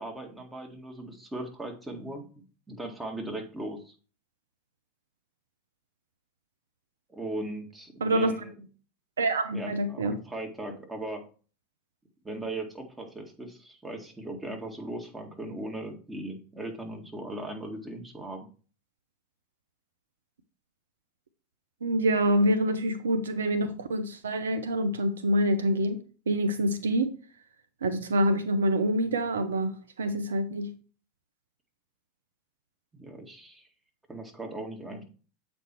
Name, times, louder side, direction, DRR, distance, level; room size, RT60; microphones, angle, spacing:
voice 1, 0.0-3.9 7.1-8.5 9.5-11.2 12.2-18.5 32.9-33.7 34.1-35.0, right 1 dB, 10° right, 1.9 m, -38 dB
voice 2, 8.0-8.3 9.2-10.2 21.8-27.1 27.8-30.7, right 1 dB, 85° right, 0.6 m, -26 dB
7.9 x 4.4 x 4.4 m
hypercardioid pair, 85°, 0 cm